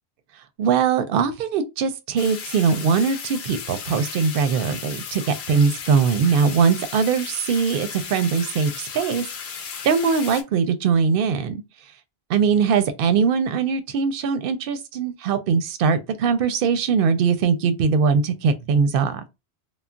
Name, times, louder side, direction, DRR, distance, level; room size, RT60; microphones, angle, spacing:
voice 1, 0.6-9.2 9.5-11.6 12.3-19.2, right 6 dB, 65° right, 0.7 m, -21 dB
sound 1, 2.2-10.4, left 6 dB, 75° left, 0.8 m, -35 dB
2.3 x 2.0 x 3.7 m
omnidirectional pair, 1.1 m